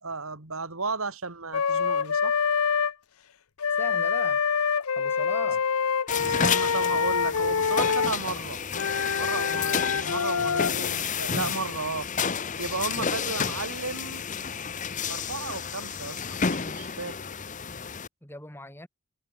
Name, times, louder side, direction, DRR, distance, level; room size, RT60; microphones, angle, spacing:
voice 1, 0.0-2.4 6.2-8.6 9.2-12.1 12.6-14.2 15.1-17.2, right 3 dB, 70° right, 3.0 m, -34 dB
Wind instrument woodwind instrument, 1.5-2.9 3.6-8.1 8.7-10.7, left 6 dB, 75° left, 0.7 m, -26 dB
voice 2, 3.7-4.4 4.9-5.7 18.2-18.9, left 1 dB, 10° left, 3.5 m, -40 dB
sound 1, 6.1-18.1, left 6 dB, 35° left, 0.9 m, -31 dB
head